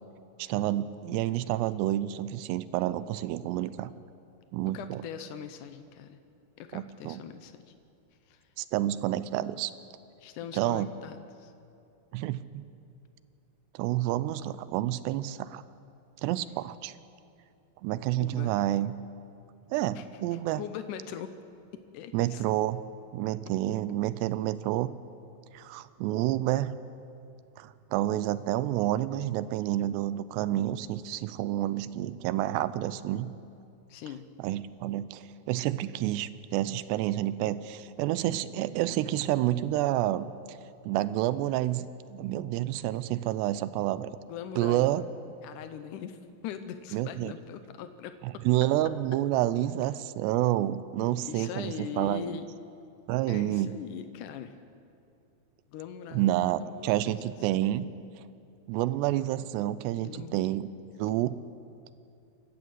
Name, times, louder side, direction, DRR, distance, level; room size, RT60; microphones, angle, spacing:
voice 1, 0.4-3.9 4.5-5.0 6.7-7.2 8.6-9.7 10.5-10.9 12.1-12.6 13.7-15.6 16.2-16.9 17.8-18.9 19.7-20.6 22.1-22.8 23.1-24.9 25.5-26.8 27.6-33.3 34.4-40.6 40.9-44.1 44.6-45.0 46.9-47.3 48.2-52.4 53.1-53.7 56.1-57.9 58.7-60.7 61.0-61.4, right 14 dB, 90° right, 15 dB, 2.8 m, -29 dB
voice 2, 4.7-6.2 6.6-7.7 8.3-8.4 10.2-11.5 18.2-18.5 20.0-20.1 20.6-21.4 21.9-22.4 33.9-34.3 44.3-44.9 45.4-48.4 51.2-52.5 53.3-54.6 55.7-56.2 56.5-57.2 60.0-60.4, left 9 dB, 85° left, 9 dB, 1.8 m, -41 dB
28.0 x 12.0 x 7.9 m, 2.6 s
omnidirectional pair, 4.8 m